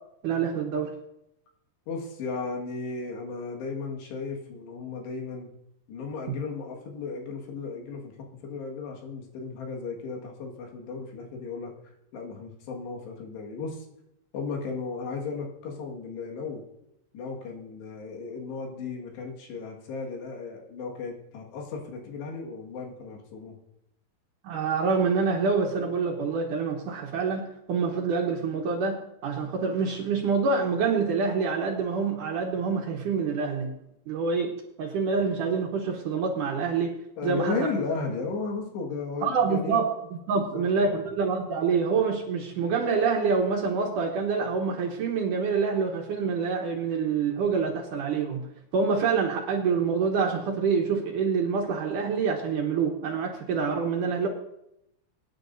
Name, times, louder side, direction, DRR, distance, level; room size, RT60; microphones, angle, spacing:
voice 1, 0.2-1.0 24.4-29.0 29.2-33.7 34.1-36.9 37.2-37.7 39.2-39.9 40.3-48.4 48.7-54.3, right 5 dB, 65° right, 1 dB, 2.2 m, -26 dB
voice 2, 1.9-5.5 5.9-13.9 14.3-16.6 17.1-23.6 37.2-39.8 40.3-41.1, left 4 dB, 85° left, 0 dB, 4.0 m, -35 dB
23.5 x 9.6 x 2.7 m, 0.81 s
omnidirectional pair, 4.7 m